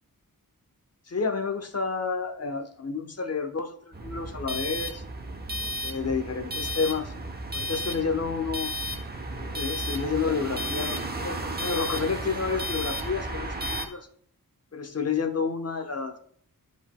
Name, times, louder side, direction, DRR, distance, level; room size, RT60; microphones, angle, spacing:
voice 1, 1.1-5.0 5.8-7.1 7.5-8.7 9.3-14.1 14.7-16.2, left 5 dB, 45° left, 6 dB, 1.0 m, -30 dB
sound 1, 3.9-13.9, equal, 25° right, 1.0 m, -33 dB
12.5 x 5.2 x 2.2 m, 0.63 s
wide cardioid pair, 95°, 36 cm